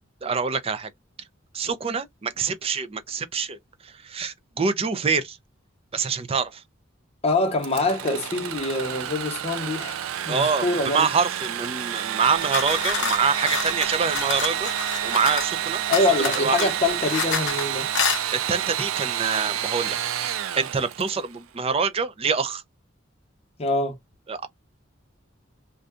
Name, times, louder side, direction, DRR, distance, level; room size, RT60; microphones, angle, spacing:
voice 1, 0.2-0.9 1.5-3.6 3.8-5.4 5.9-6.6 10.3-15.8 16.2-16.7 18.3-20.0 20.3-22.6 24.3-24.5, right 5 dB, 30° right, 0.4 m, -26 dB
voice 2, 7.2-10.0 10.3-11.1 15.9-17.9 23.6-23.9, left 2 dB, 30° left, 0.8 m, -24 dB
Engine / Sawing, 7.6-21.3, right 10 dB, 90° right, 0.4 m, -29 dB
sound 1, 12.2-15.6 15.9-17.6 17.9-18.2, left 6 dB, 60° left, 0.8 m, -28 dB
2.6 x 2.2 x 3.6 m
head